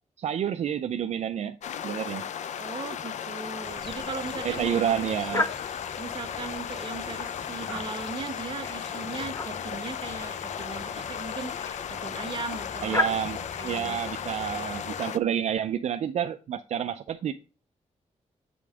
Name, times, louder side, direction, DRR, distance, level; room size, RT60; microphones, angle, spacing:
voice 1, 0.2-1.6 1.8-2.2 4.4-5.5 12.8-17.3, right 9 dB, 65° right, 0.4 m, -29 dB
sound 1, 1.6-15.2, left 8 dB, 75° left, 0.5 m, -35 dB
voice 2, 2.6-4.8 6.0-13.2 13.6-14.0, right 4 dB, 40° right, 1.0 m, -38 dB
sound 2, 2.8-11.7, right 1 dB, ahead, 1.1 m, -53 dB
sound 3, 3.6-15.0, left 2 dB, 25° left, 0.5 m, -37 dB
8.5 x 5.1 x 3.5 m
wide cardioid pair, 140°, 12 cm